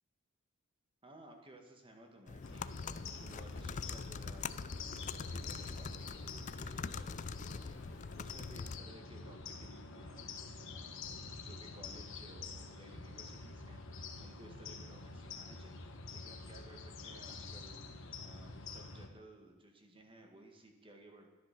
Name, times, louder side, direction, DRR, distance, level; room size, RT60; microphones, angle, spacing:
voice 1, 1.0-10.4 10.7-11.1 11.4-21.3, right 1 dB, 25° right, 3 dB, 1.9 m, -58 dB
sound 1, 2.3-8.8, left 5 dB, 35° left, 0.4 m, -44 dB
sound 2, 2.4-19.1, left 3 dB, 65° left, 1.4 m, -47 dB
13.5 x 10.5 x 6.1 m, 1.1 s
head